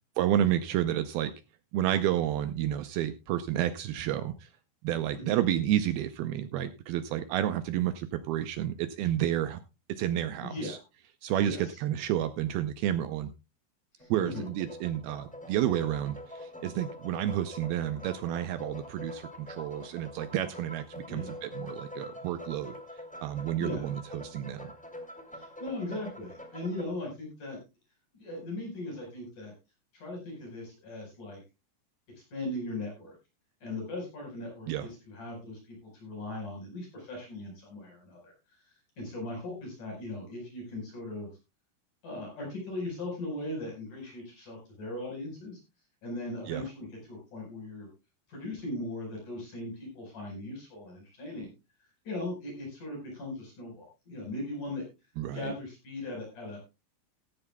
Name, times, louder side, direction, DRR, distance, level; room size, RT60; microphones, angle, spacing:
voice 1, 0.2-1.3 1.7-4.5 4.8-9.6 9.9-10.8 11.2-13.3 14.1-22.8 23.2-24.7 34.7-34.9 46.5-46.7 55.2-55.5, right 11 dB, 90° right, 10 dB, 2.1 m, -30 dB
voice 2, 10.4-10.8 11.4-11.8 14.0-14.5 21.1-21.5 23.6-23.9 25.3-27.6 28.1-29.5 29.9-31.4 32.3-33.1 33.6-38.3 38.6-41.3 42.0-45.6 46.0-47.9 48.3-51.5 52.0-54.8 55.3-56.6, left 2 dB, 45° left, 0 dB, 5.9 m, -39 dB
sound 1, 14.0-26.9, left 1 dB, 5° left, 1.0 m, -45 dB
16.0 x 13.5 x 2.2 m, 0.26 s
omnidirectional pair, 5.3 m